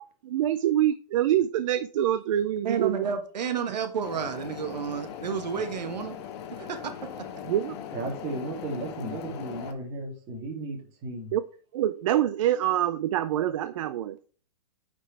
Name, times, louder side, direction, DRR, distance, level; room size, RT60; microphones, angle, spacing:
voice 1, 0.2-3.0 7.5-7.8 11.3-11.4 11.7-14.2, right 12 dB, 50° right, 12 dB, 0.5 m, -25 dB
voice 2, 2.6-6.2 6.5-6.9 7.2-7.3, right 7 dB, 85° right, 6 dB, 1.4 m, -31 dB
sound 1, 4.0-9.7, left 9 dB, 40° left, 1.1 m, -40 dB
voice 3, 7.9-11.3, right 2 dB, 25° right, -1 dB, 3.0 m, -35 dB
9.6 x 5.3 x 3.4 m, 0.40 s
hypercardioid pair, 150°, 21 cm